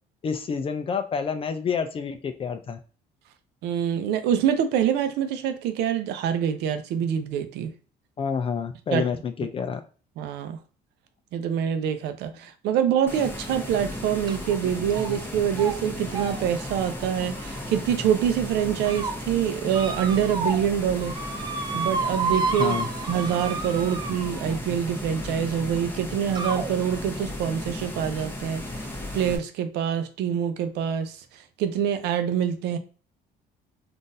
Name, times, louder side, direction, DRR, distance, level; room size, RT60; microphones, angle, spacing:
voice 1, 0.2-2.8 8.2-9.8 22.6-22.9, left 6 dB, 35° left, 0.4 m, -28 dB
voice 2, 3.6-7.7 8.9-9.1 10.2-10.6 11.3-21.1 21.7-22.8 23.1-28.9 29.1-32.8, right 9 dB, 80° right, 0.5 m, -25 dB
sound 1, 13.1-29.4, left 1 dB, 15° left, 1.0 m, -35 dB
sound 2, 14.3-14.5 14.9-15.3 15.5-15.8 16.1-18.0 18.6-19.1 19.7-20.7 21.0-24.6 25.6-25.7 26.4-26.7, right 4 dB, 25° right, 0.4 m, -31 dB
3.8 x 2.5 x 2.6 m
cardioid pair, 110°, 17 cm